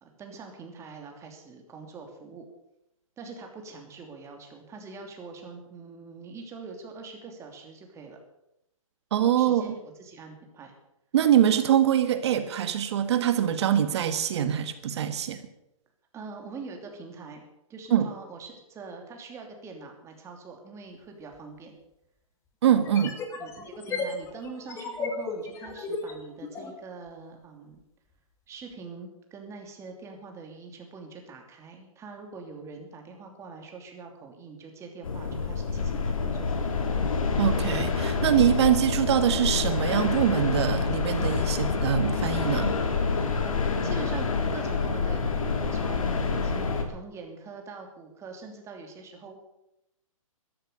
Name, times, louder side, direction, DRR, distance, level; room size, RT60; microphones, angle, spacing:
voice 1, 0.0-2.4 3.2-8.2 9.3-10.8 16.1-17.4 17.7-21.8 23.4-27.8 28.5-36.5 43.8-49.4, right 4 dB, 15° right, 3 dB, 2.9 m, -43 dB
voice 2, 9.1-9.7 11.1-15.4 17.9-18.1 22.6-23.2 37.4-42.7, right 10 dB, 50° right, 10 dB, 1.6 m, -24 dB
sound 1, 21.3-21.4 22.7-26.7, left 4 dB, 15° left, 2.2 m, -35 dB
sound 2, 35.0-46.8, left 4 dB, 70° left, 3.1 m, -27 dB
14.0 x 13.0 x 6.7 m, 0.84 s
hypercardioid pair, 145°, 18 cm